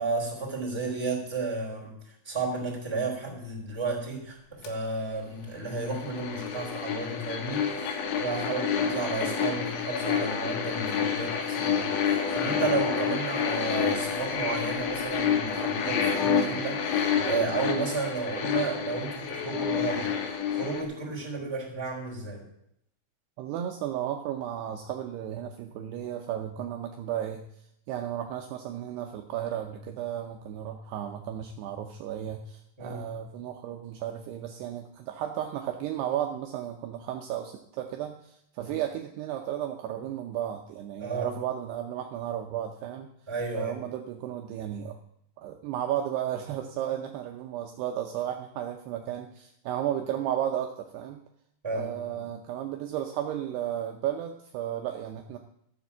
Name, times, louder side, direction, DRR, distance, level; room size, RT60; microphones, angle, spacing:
voice 1, 0.0-1.9 2.2-16.8 17.2-20.1 20.5-22.4 32.8-33.1 38.6-38.7 41.0-41.3 43.3-43.8 51.6-52.2, right 3 dB, 5° right, -4 dB, 3.3 m, -32 dB
sound 1, 4.6-4.7 5.8-20.8, left 7 dB, 85° left, 4.0 m, -29 dB
voice 2, 12.3-12.8 23.4-27.4 27.9-43.1 43.6-45.0 45.4-51.2 51.7-55.4, right 11 dB, 75° right, 4 dB, 2.6 m, -34 dB
13.0 x 7.5 x 7.2 m, 0.75 s
omnidirectional pair, 5.2 m